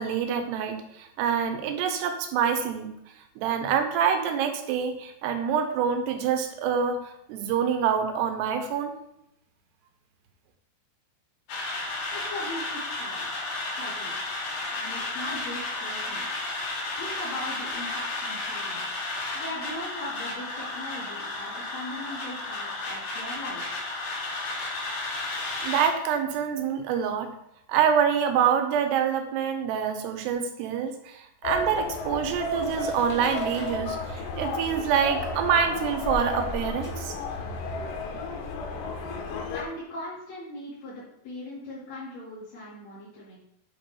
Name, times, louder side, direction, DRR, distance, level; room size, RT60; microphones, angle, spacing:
voice 1, 0.0-2.9 3.4-8.9 25.6-27.3 27.7-37.2, right 7 dB, 80° right, 7 dB, 3.0 m, -26 dB
sound 1, 11.5-25.9, left 2 dB, 65° left, 3.4 m, -33 dB
voice 2, 12.1-13.2 13.7-14.1 14.7-16.3 17.0-18.8 19.3-23.8 39.5-43.4, left 1 dB, 45° left, -10 dB, 3.8 m, -39 dB
sound 2, 31.4-39.6, left 2 dB, 80° left, 3.2 m, -33 dB
sound 3, 32.4-37.6, right 1 dB, 10° right, 1.7 m, -41 dB
8.9 x 4.4 x 5.4 m, 0.80 s
omnidirectional pair, 4.7 m